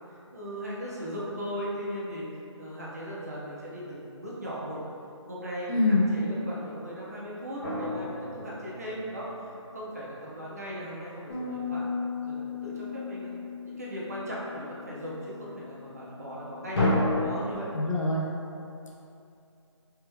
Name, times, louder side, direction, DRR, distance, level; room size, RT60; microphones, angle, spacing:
voice 1, 0.3-2.3 2.6-4.8 5.3-11.9 12.3-13.3 13.6-16.9 17.2-17.7 18.6-18.8, equal, 30° right, -6 dB, 0.6 m, -38 dB
voice 2, 5.7-6.1 17.7-18.2, left 2 dB, 85° left, -3 dB, 0.9 m, -24 dB
sound 1, 7.6-9.7 16.7-17.4, left 2 dB, 50° left, 1.2 m, -29 dB
Bass guitar, 11.3-17.5, left 5 dB, 35° left, 0.5 m, -38 dB
3.4 x 3.2 x 3.1 m, 2.6 s
hypercardioid pair, 175°, 16 cm